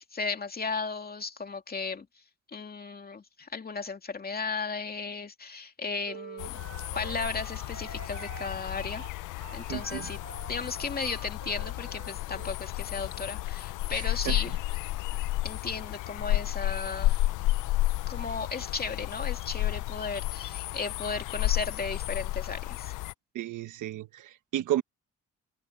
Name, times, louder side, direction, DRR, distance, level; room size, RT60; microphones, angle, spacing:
voice 1, 0.0-2.1 2.5-6.6 6.9-9.0 9.3-10.2 10.5-14.5 15.4-17.2 18.1-22.9, left 4 dB, 30° left, 2.5 m, -35 dB
sound 1, 6.0-12.6, right 8 dB, 60° right, 5.5 m, -47 dB
sound 2, 6.4-23.1, left 17 dB, 85° left, 0.5 m, -32 dB
voice 2, 9.7-10.1 13.9-14.4 23.3-24.8, right 13 dB, 80° right, 1.4 m, -33 dB
cardioid pair, 90°, 30 cm